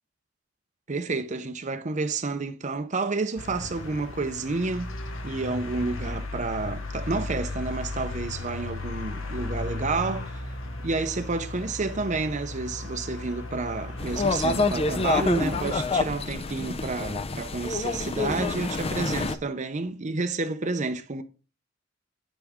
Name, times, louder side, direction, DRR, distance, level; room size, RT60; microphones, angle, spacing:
voice 1, 0.9-4.9 5.2-10.4 10.8-21.2, right 3 dB, 40° right, 0.7 m, -30 dB
sound 1, 3.4-15.7, left 2 dB, 90° left, 1.4 m, -35 dB
sound 2, 14.0-19.4, left 3 dB, 30° left, 0.6 m, -27 dB
9.1 x 7.3 x 3.6 m
head